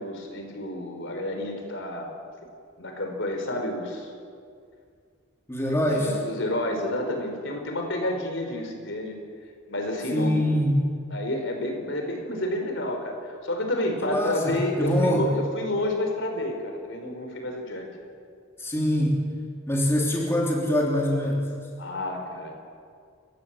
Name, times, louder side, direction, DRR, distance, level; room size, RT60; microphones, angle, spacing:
voice 1, 0.0-2.1 2.8-4.1 5.9-9.2 9.7-10.5 11.1-17.9 21.8-22.5, left 1 dB, 60° left, 3 dB, 4.4 m, -30 dB
voice 2, 5.5-6.2 10.1-10.8 14.0-15.3 18.6-19.2 19.7-21.4, equal, 10° left, -2 dB, 3.2 m, -24 dB
29.5 x 16.0 x 7.5 m, 2.2 s
head